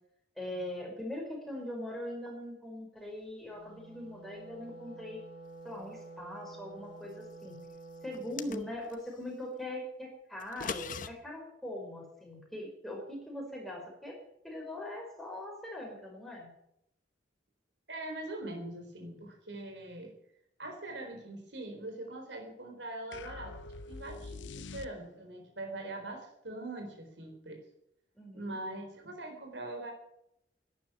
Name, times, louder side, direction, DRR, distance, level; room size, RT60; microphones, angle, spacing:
voice 1, 0.4-5.2 5.6-7.5 8.0-14.2 14.4-16.5 28.1-28.6, left 1 dB, ahead, -1 dB, 5.1 m, -41 dB
Wind instrument woodwind instrument, 3.4-8.6, right 2 dB, 30° right, 2.6 m, -50 dB
sound 1, 8.1-9.0 10.4-11.1, left 6 dB, 45° left, 0.9 m, -39 dB
voice 2, 17.9-20.1 20.6-23.5 23.9-27.6 28.3-29.9, right 2 dB, 70° right, 3 dB, 4.0 m, -42 dB
sound 2, 23.1-25.4, left 3 dB, 85° left, 0.6 m, -45 dB
12.0 x 10.5 x 9.1 m, 0.77 s
head